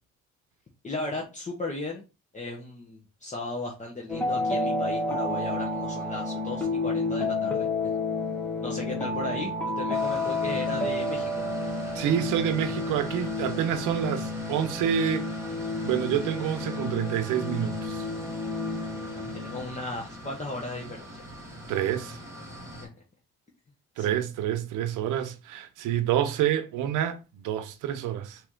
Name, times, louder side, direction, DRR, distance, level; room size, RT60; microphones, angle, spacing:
voice 1, 0.8-2.0 2.3-7.7 8.6-11.4 19.1-21.2 24.0-24.2, left 2 dB, 25° left, 1.1 m, -36 dB
sound 1, 4.1-19.8, left 2 dB, 5° left, 1.3 m, -30 dB
sound 2, 9.9-22.9, equal, 10° right, 2.7 m, -42 dB
voice 2, 11.9-15.2 15.8-18.0 21.7-22.2 24.0-28.4, right 10 dB, 90° right, 0.7 m, -28 dB
4.4 x 2.9 x 3.7 m
cardioid pair, 90°, 30 cm